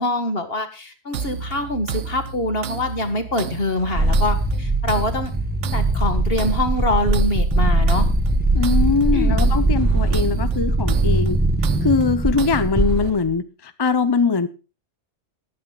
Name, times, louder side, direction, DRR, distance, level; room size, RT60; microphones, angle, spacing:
voice 1, 0.0-5.3 5.7-8.1 9.1-9.4, left 2 dB, 50° left, 8 dB, 1.9 m, -24 dB
sound 1, 1.1-13.1, right 6 dB, 75° right, 1.1 m, -31 dB
sound 2, 4.0-13.3, right 2 dB, 10° right, 1.4 m, -20 dB
voice 2, 8.5-11.4 11.8-14.5, left 4 dB, 25° left, 11 dB, 0.7 m, -21 dB
19.5 x 10.0 x 2.4 m, 0.32 s
omnidirectional pair, 1.3 m